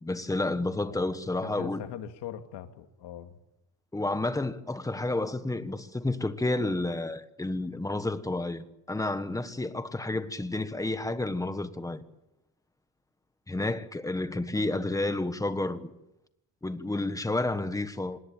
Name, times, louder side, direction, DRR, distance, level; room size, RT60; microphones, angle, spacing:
voice 1, 0.0-1.8 3.9-12.0 13.5-15.9 16.6-18.2, left 2 dB, 10° left, 1.4 m, -30 dB
voice 2, 1.4-3.4, left 10 dB, 80° left, 2.6 m, -41 dB
26.5 x 19.5 x 9.1 m
cardioid pair, 160°, 40 cm